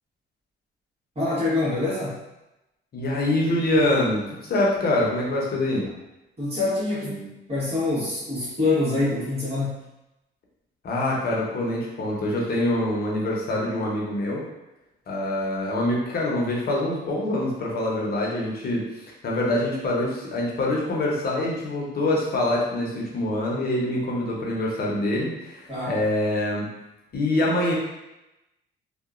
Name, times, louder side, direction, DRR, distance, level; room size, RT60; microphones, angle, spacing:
voice 1, 1.1-2.2 6.4-9.8 25.7-26.0, left 2 dB, 30° right, -8 dB, 1.4 m, -25 dB
voice 2, 2.9-5.9 10.8-14.4 15.1-26.7 27.1-27.7, left 1 dB, 50° left, -3 dB, 0.8 m, -25 dB
2.9 x 2.3 x 2.5 m, 0.96 s
cardioid pair, 90°, 20 cm